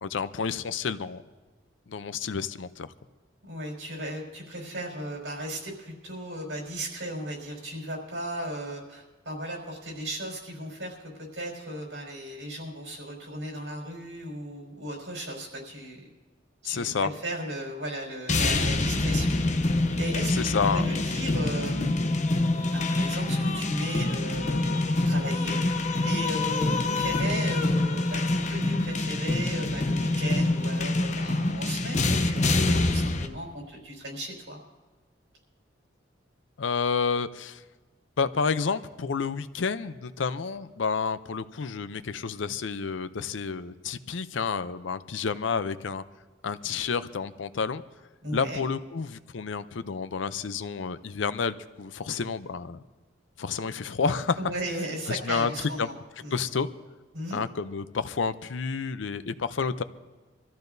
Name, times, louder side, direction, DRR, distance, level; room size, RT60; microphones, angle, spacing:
voice 1, 0.0-1.2 1.9-2.9 16.6-17.1 20.3-20.9 36.6-37.6 38.2-46.0 46.4-47.8 48.3-52.8 53.4-54.4 55.1-55.9 56.3-56.7 57.3-59.8, left 5 dB, 80° left, 13 dB, 0.6 m, -30 dB
voice 2, 3.4-11.0 11.3-16.1 16.6-19.3 20.0-21.9 22.7-25.6 26.0-34.6 48.2-48.6 54.4-55.9 56.2-56.3 57.1-57.4, right 1 dB, 75° right, -1 dB, 5.0 m, -36 dB
sound 1, 18.3-33.3, left 2 dB, 40° left, 0.7 m, -26 dB
24.5 x 14.0 x 2.7 m, 1.3 s
head